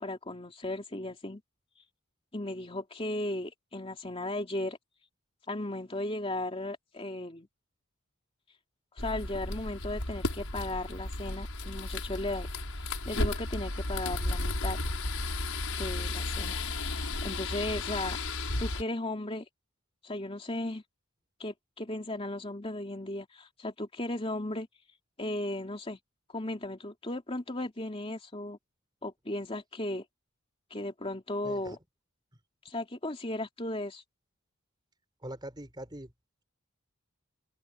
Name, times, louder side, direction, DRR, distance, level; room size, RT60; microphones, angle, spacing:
voice 1, 0.0-1.4 2.3-4.8 5.5-7.5 8.9-12.5 12.8-14.8 15.8-18.2 18.6-19.4 20.0-20.8 21.4-24.7 25.2-26.0 26.3-28.6 29.0-30.0 30.7-31.8 32.6-34.0, left 1 dB, 25° left, 3.0 m, -36 dB
sound 1, 9.0-18.8, left 2 dB, 75° left, 5.5 m, -33 dB
voice 2, 31.4-31.8 35.2-36.1, right 1 dB, 20° right, 4.5 m, -42 dB
open air
head